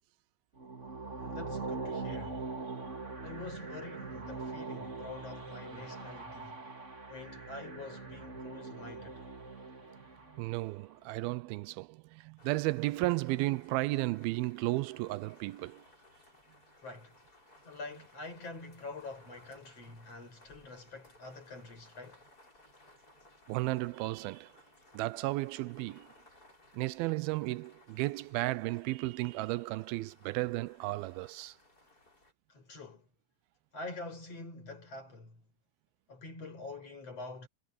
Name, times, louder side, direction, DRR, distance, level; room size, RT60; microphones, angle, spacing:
sound 1, 0.6-10.7, right 3 dB, 20° right, 2.7 m, -42 dB
voice 1, 1.2-2.5 3.2-6.6 7.1-9.2 16.8-17.2 17.6-22.2 32.5-33.1 33.7-35.5 36.1-37.5, left 3 dB, 40° left, 6.8 m, -46 dB
voice 2, 10.4-15.8 23.5-24.5 24.9-26.1 26.7-31.6, right 20 dB, 85° right, 2.4 m, -34 dB
sound 2, 12.4-32.3, left 2 dB, 25° left, 7.5 m, -61 dB
omnidirectional pair, 4.3 m